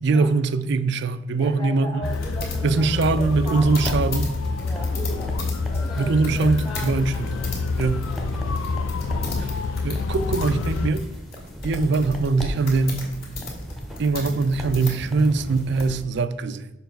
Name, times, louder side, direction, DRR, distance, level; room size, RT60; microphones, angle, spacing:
voice 1, 0.0-2.1 2.6-4.3 6.0-7.3 7.8-8.1 9.8-11.1 11.6-13.1 14.0-16.7, right 3 dB, 55° right, 0.4 m, -22 dB
voice 2, 1.3-4.1 4.6-7.5 8.0-8.3 8.9-9.6, right 1 dB, 20° left, 1.5 m, -38 dB
sound 1, 2.0-10.9, left 4 dB, 70° left, 0.4 m, -27 dB
sound 2, 2.0-15.9, left 2 dB, 45° left, 2.0 m, -37 dB
sound 3, 2.0-16.0, equal, ahead, 0.8 m, -37 dB
6.9 x 5.3 x 3.9 m
head